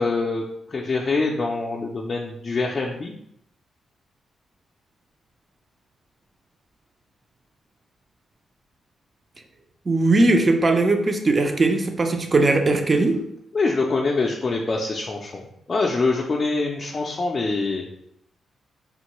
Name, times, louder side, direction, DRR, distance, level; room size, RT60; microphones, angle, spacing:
voice 1, 0.0-3.1 13.5-17.8, left 3 dB, 40° left, -1 dB, 0.4 m, -25 dB
voice 2, 9.9-13.2, right 2 dB, 35° right, 5 dB, 0.5 m, -19 dB
3.5 x 2.1 x 3.0 m, 0.75 s
cardioid pair, 70°, 0 cm